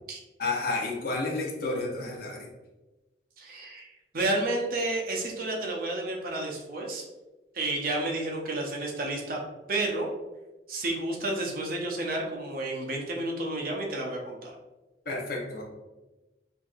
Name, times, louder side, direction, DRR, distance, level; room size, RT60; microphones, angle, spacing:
voice 1, 0.4-2.5 15.1-15.6, left 3 dB, 55° left, -1 dB, 0.7 m, -31 dB
voice 2, 3.4-3.9 4.1-7.0 7.5-9.4 9.7-10.1 10.7-14.5, right 2 dB, 50° right, -1 dB, 0.7 m, -31 dB
4.5 x 2.6 x 2.4 m, 1.1 s
head